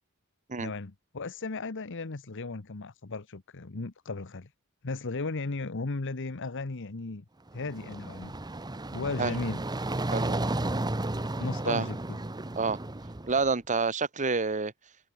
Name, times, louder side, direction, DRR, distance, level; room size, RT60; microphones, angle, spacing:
voice 1, 0.6-4.5 4.8-7.2 7.5-8.3 8.9-9.6 11.4-12.2, left 3 dB, 60° left, 1.0 m, -35 dB
sound 1, 7.5-13.5, right 2 dB, 20° right, 0.9 m, -33 dB
voice 2, 10.1-10.4 11.6-11.9 12.6-12.8 13.3-14.7, right 4 dB, 35° right, 1.3 m, -28 dB
head